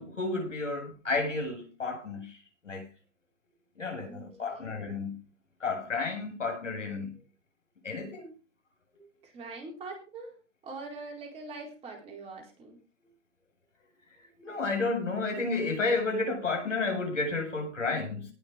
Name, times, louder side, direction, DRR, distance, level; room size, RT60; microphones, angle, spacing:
voice 1, 0.0-2.3 2.6-2.9 3.8-5.2 5.6-7.1 7.8-8.3 14.4-18.3, left 3 dB, 90° left, 7.8 m, -31 dB
voice 2, 4.0-4.8 9.2-10.3 10.6-12.8, right 3 dB, 15° right, 4.4 m, -43 dB
19.0 x 6.7 x 5.1 m
hypercardioid pair, 140°, 36 cm